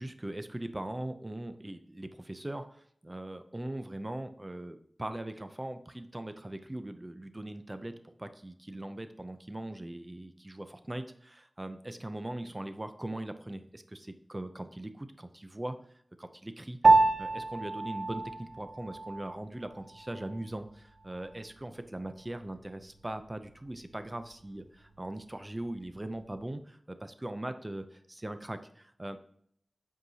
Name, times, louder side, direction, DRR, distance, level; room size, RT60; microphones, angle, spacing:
voice 1, 0.0-2.7 3.0-15.8 16.2-29.2, right 1 dB, 20° right, 9 dB, 0.5 m, -40 dB
Piano, 16.8-26.5, right 3 dB, 85° right, 0.5 m, -31 dB
7.8 x 4.7 x 2.8 m, 0.66 s
wide cardioid pair, 75°, 0 cm